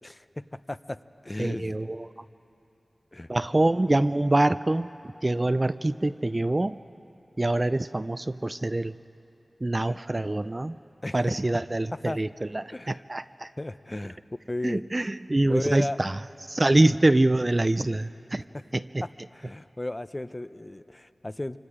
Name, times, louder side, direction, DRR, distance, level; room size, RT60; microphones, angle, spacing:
voice 1, 0.7-1.8 3.1-3.3 3.5-3.6 11.0-11.4 12.1-12.2 12.7-13.0 13.6-14.2 14.5-14.8 15.5-16.0 19.3-21.6, left 1 dB, 30° left, 13 dB, 0.6 m, -34 dB
voice 2, 1.4-2.2 3.3-4.9 5.2-6.8 7.4-8.9 9.6-10.8 11.1-13.5 14.6-18.4 18.7-19.0, right 2 dB, 35° right, 12 dB, 0.4 m, -25 dB
25.5 x 25.0 x 5.0 m, 2.9 s
cardioid pair, 45°, 0 cm